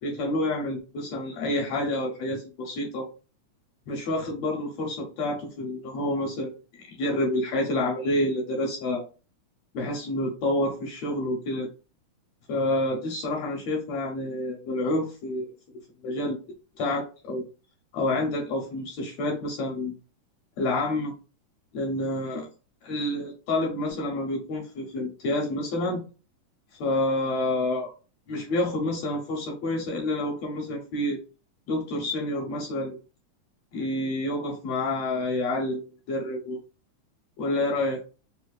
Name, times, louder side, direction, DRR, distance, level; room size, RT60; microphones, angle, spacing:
voice 1, 0.0-3.1 3.9-9.0 9.7-11.7 12.5-15.5 16.0-16.4 16.8-17.5 17.9-19.9 20.6-21.1 21.7-22.5 22.8-26.0 26.8-27.9 28.3-31.2 31.7-33.0 33.7-36.6 37.4-38.0, left 1 dB, 75° left, 0 dB, 1.6 m, -28 dB
4.9 x 2.1 x 2.3 m, 0.34 s
omnidirectional pair, 3.6 m